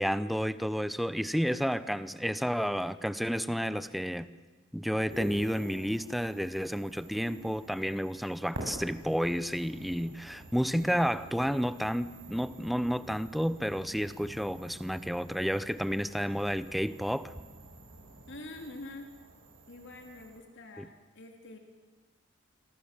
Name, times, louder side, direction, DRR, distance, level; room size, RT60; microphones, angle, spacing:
voice 1, 0.0-4.3 4.7-17.3 20.8-20.9, equal, ahead, 14 dB, 0.8 m, -31 dB
sound 1, 5.1-20.4, right 1 dB, 70° right, 6.6 m, -48 dB
voice 2, 18.3-19.1 19.7-21.6, left 2 dB, 60° left, 3 dB, 3.0 m, -46 dB
27.5 x 23.0 x 7.5 m, 1.3 s
head